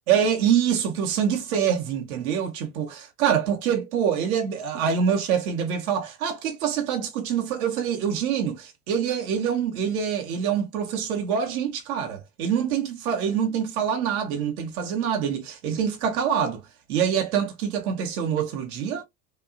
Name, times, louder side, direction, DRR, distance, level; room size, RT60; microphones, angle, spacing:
voice 1, 0.1-16.6 16.9-19.0, right 8 dB, 70° right, 0.8 m, -25 dB
2.8 x 2.2 x 2.4 m
hypercardioid pair, 90°, 45 cm